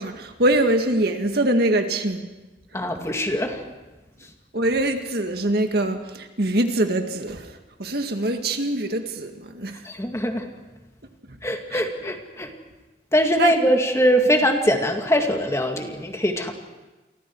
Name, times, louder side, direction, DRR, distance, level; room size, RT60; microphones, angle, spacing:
voice 1, 0.0-2.3 4.5-9.8 11.7-11.8 13.4-13.5, right 1 dB, 60° right, 5 dB, 2.0 m, -23 dB
voice 2, 2.7-3.6 9.8-10.5 11.4-12.5 13.1-16.5, equal, 15° left, 4 dB, 2.1 m, -22 dB
29.5 x 24.0 x 4.8 m, 1.1 s
head